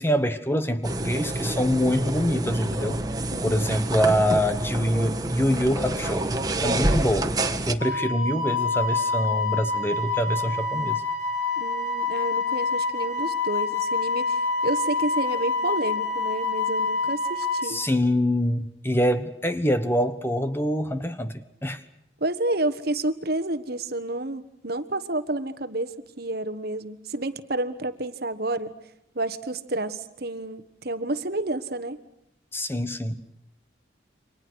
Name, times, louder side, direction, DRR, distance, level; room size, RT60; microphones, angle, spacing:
voice 1, 0.0-3.0 3.4-6.3 6.6-7.3 7.7-11.0 17.6-21.8 32.5-33.2, equal, 10° left, 10 dB, 1.2 m, -25 dB
sound 1, 0.8-7.7, right 1 dB, 20° right, 1.7 m, -27 dB
voice 2, 3.3-3.8 11.6-17.8 22.2-28.7 29.1-32.0, right 2 dB, 50° right, 11 dB, 1.4 m, -30 dB
Wind instrument woodwind instrument, 7.8-17.7, left 4 dB, 70° left, 3.3 m, -27 dB
29.0 x 25.0 x 6.4 m, 0.77 s
head